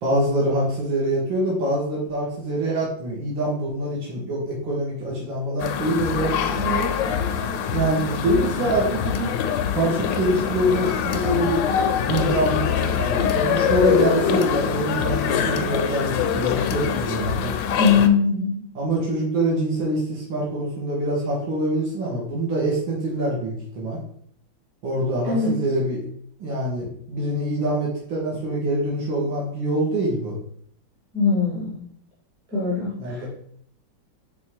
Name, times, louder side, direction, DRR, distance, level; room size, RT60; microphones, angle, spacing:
voice 1, 0.0-6.9 7.7-9.4 9.7-11.6 12.1-17.6 18.7-24.0 24.8-26.1 26.4-30.4 33.0-33.3, right 1 dB, 80° right, -5 dB, 2.3 m, -25 dB
sound 1, 5.6-18.1, left 7 dB, 80° left, 1.3 m, -24 dB
voice 2, 17.8-18.6 25.3-25.6 31.1-31.8 32.5-33.3, left 5 dB, 55° right, -5 dB, 2.0 m, -21 dB
5.6 x 3.7 x 4.5 m, 0.64 s
omnidirectional pair, 2.1 m